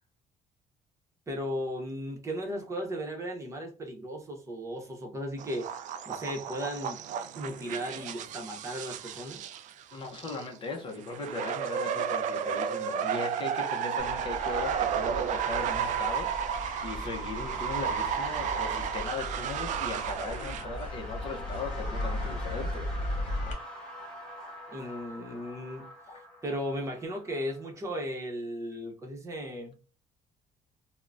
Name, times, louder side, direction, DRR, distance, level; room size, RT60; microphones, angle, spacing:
voice 1, 1.3-5.7 6.0-7.0 7.4-9.4 24.7-25.9 26.4-29.7, equal, 20° right, 0.8 m, -36 dB
sound 1, 5.4-10.5 11.0-20.6, right 8 dB, 60° right, 0.4 m, -33 dB
voice 2, 9.9-23.6 26.1-26.2, left 3 dB, 35° left, 0.6 m, -38 dB
sound 2, 14.0-23.5, left 1 dB, 55° left, 1.2 m, -37 dB
sound 3, 14.2-27.9, equal, 5° left, 1.2 m, -45 dB
3.6 x 2.1 x 2.4 m
cardioid pair, 155°, 15 cm